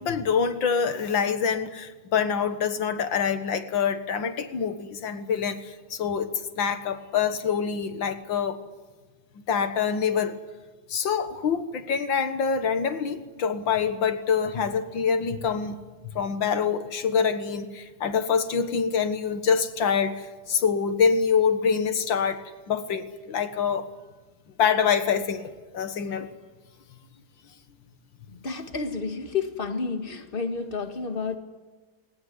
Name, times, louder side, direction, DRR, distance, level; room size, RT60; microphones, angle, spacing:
voice 1, 0.0-8.6 9.5-10.4 10.9-15.8 16.1-23.9 24.6-26.3, left 6 dB, 65° left, 10 dB, 2.2 m, -25 dB
voice 2, 28.3-31.4, left 4 dB, 25° left, 7 dB, 1.9 m, -30 dB
20.0 x 19.5 x 9.6 m, 1.3 s
omnidirectional pair, 2.3 m